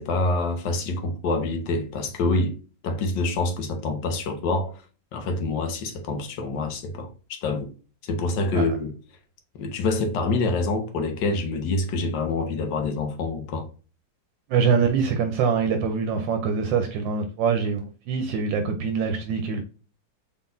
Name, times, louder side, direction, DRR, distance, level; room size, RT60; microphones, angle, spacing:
voice 1, 0.0-2.6 2.8-4.8 5.1-7.7 8.0-8.9 9.5-13.7, left 3 dB, 70° left, 1.5 m, -26 dB
voice 2, 14.5-19.6, right 6 dB, 80° right, 1.3 m, -24 dB
4.1 x 3.9 x 2.5 m
omnidirectional pair, 2.0 m